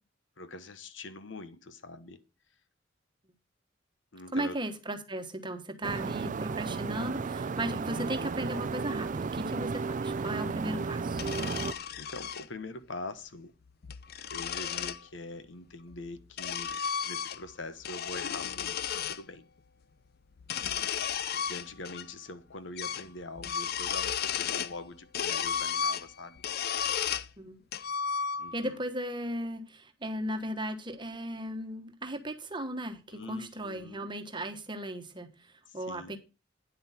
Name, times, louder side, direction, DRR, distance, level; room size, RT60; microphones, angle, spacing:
voice 1, 0.4-2.2 4.1-4.6 11.7-13.5 14.3-19.5 21.3-26.4 28.4-28.8 33.1-34.1 35.7-36.2, left 2 dB, 75° left, 1.1 m, -44 dB
voice 2, 4.3-11.2 27.4-27.6 28.5-36.2, right 1 dB, 25° right, 1.3 m, -36 dB
sound 1, 5.8-11.7, right 4 dB, 40° right, 0.4 m, -33 dB
sound 2, 11.1-12.5 13.7-15.0 15.9-17.5 17.8-19.2 20.4-22.1 22.3-22.4 22.8-23.1 23.4-24.8 25.1-27.3 27.7-28.7, left 8 dB, 55° left, 0.5 m, -33 dB
9.5 x 7.8 x 4.2 m
head